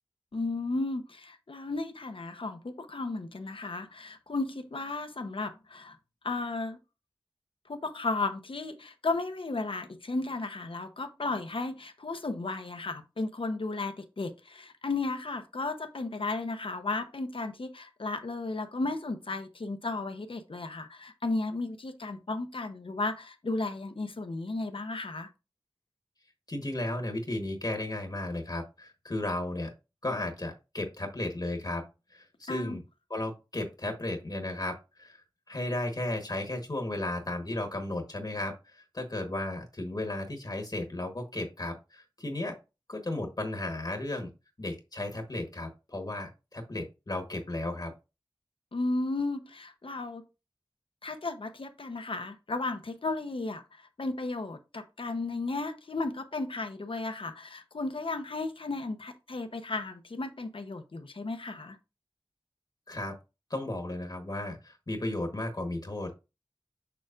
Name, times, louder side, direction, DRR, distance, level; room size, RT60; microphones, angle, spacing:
voice 1, 0.3-6.0 6.2-6.8 7.7-25.3 32.5-32.8 48.7-50.2 51.0-61.8, left 3 dB, 75° left, 0.9 m, -34 dB
voice 2, 26.5-29.7 30.0-31.8 32.1-32.8 33.1-35.2 35.5-42.6 42.9-44.3 44.6-47.9 62.9-63.1 63.5-66.1, left 1 dB, 45° left, 1.3 m, -34 dB
6.9 x 6.2 x 2.5 m
wide cardioid pair, 60°, 9 cm